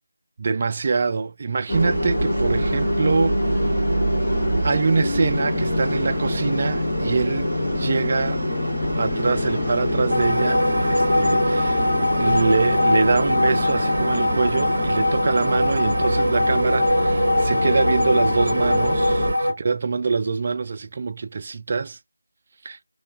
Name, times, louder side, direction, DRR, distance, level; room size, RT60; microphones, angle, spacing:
voice 1, 0.4-3.8 4.6-8.4 9.0-11.9 12.2-22.0 22.6-22.8, right 4 dB, 30° right, 0.3 m, -24 dB
sound 1, 1.7-19.3, equal, 10° right, 1.5 m, -24 dB
sound 2, 10.1-19.5, left 1 dB, 45° right, 0.9 m, -22 dB
2.8 x 2.3 x 2.6 m
figure-of-eight pair, 165°, 0 cm